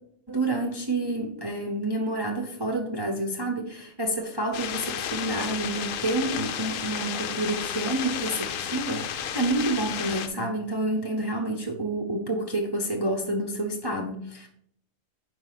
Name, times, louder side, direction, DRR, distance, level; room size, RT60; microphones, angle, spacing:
voice 1, 0.3-14.5, right 2 dB, 30° right, 1 dB, 0.5 m, -29 dB
sound 1, 4.5-10.3, left 9 dB, 80° left, 1.0 m, -32 dB
4.9 x 4.6 x 5.7 m, 0.67 s
omnidirectional pair, 1.4 m